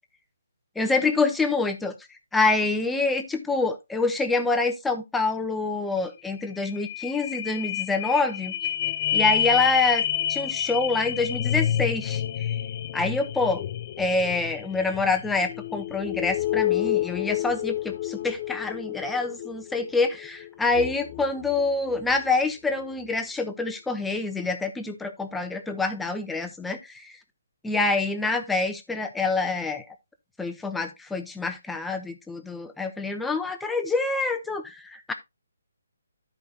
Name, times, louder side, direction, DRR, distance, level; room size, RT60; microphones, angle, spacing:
voice 1, 0.8-1.9 2.3-8.5 9.1-10.0 10.3-12.6 12.9-13.6 14.0-27.1 27.6-29.8 30.4-35.1, left 3 dB, 5° left, 7 dB, 0.8 m, -26 dB
sound 1, 6.0-6.1 6.3-22.3 22.8-22.9, left 11 dB, 30° left, 0.5 m, -29 dB
13.0 x 5.0 x 2.8 m, 0.21 s
hypercardioid pair, 165°, 0 cm